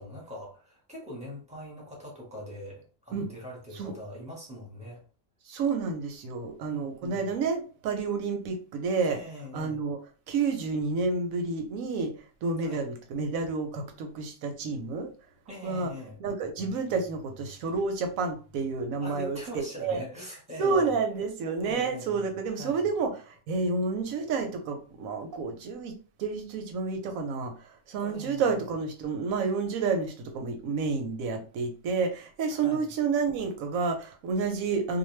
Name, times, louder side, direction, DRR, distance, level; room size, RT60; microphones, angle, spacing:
voice 1, 0.0-5.0 6.7-7.3 9.1-9.8 12.6-12.8 15.5-16.2 19.0-21.0 21.6-22.9 28.0-28.4 32.5-32.9, left 1 dB, 5° right, 0.8 m, -42 dB
voice 2, 5.5-9.2 9.5-10.0 10.3-12.1 12.4-15.1 15.6-15.9 16.2-20.0 20.6-35.0, right 4 dB, 90° right, 1.1 m, -30 dB
2.4 x 2.2 x 3.1 m
omnidirectional pair, 1.4 m